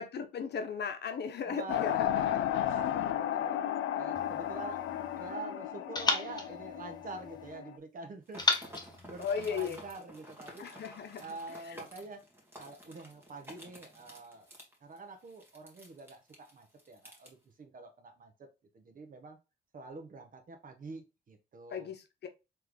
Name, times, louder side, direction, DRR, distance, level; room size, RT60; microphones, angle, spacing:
voice 1, 0.0-2.4 9.2-9.8 10.6-11.8 21.7-22.3, left 6 dB, 60° left, 0.9 m, -37 dB
voice 2, 1.5-3.6 3.9-4.9 5.2-8.4 9.0-10.7 11.2-12.2 12.6-14.5 14.8-18.5 18.7-19.4 19.7-21.9, right 3 dB, 45° right, 1.1 m, -46 dB
sound 1, 1.7-7.7, left 11 dB, 75° left, 0.5 m, -33 dB
sound 2, 4.1-5.4 5.9-7.6 8.4-10.0, left 3 dB, 20° left, 1.0 m, -35 dB
sound 3, 8.3-17.3, equal, 10° right, 1.8 m, -52 dB
3.8 x 3.3 x 3.2 m
cardioid pair, 90°, 20 cm